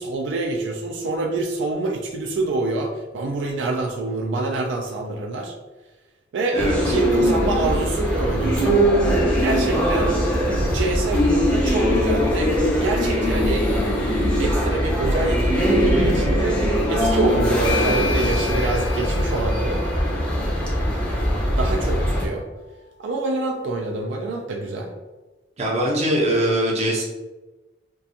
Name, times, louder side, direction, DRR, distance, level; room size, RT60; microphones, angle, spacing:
voice 1, 0.0-5.6 6.3-8.8 9.4-10.1 10.6-12.5 12.8-13.7 14.4-16.6 16.9-19.9 20.8-21.0 21.5-22.4 23.0-24.9, right 2 dB, 80° right, 2 dB, 0.3 m, -26 dB
sound 1, 6.6-22.3, equal, 5° left, 0.5 m, -21 dB
Bell / Doorbell, 17.0-22.1, left 4 dB, 70° left, 0.4 m, -33 dB
voice 2, 25.6-27.0, right 1 dB, 35° right, -3 dB, 0.6 m, -21 dB
2.4 x 2.3 x 2.7 m, 1.2 s
head